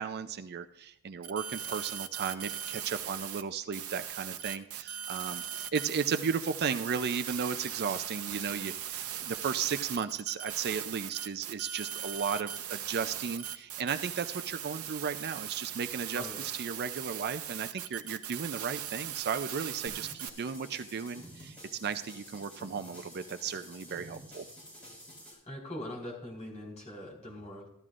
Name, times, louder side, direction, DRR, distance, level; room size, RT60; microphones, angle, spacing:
voice 1, 0.0-16.3 16.5-24.5, right 6 dB, 45° right, 10 dB, 0.4 m, -35 dB
sound 1, 1.2-3.4 3.7-20.3, right 10 dB, 70° right, 0.8 m, -39 dB
sound 2, 19.9-25.3, equal, 5° left, 5.1 m, -50 dB
voice 2, 25.3-27.7, left 1 dB, 30° left, -2 dB, 4.3 m, -42 dB
14.5 x 12.5 x 2.5 m, 0.78 s
head